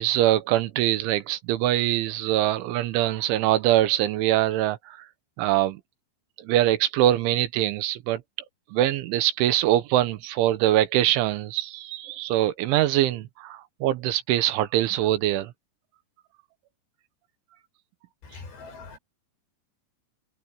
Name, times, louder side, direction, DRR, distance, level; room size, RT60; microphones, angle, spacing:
voice 1, 0.0-5.0 5.4-5.8 6.4-8.2 8.7-15.5, right 13 dB, 85° right, 3.5 m, -23 dB
voice 2, 18.3-19.0, left 4 dB, 65° left, 8.6 m, -42 dB
omnidirectional pair, 5.5 m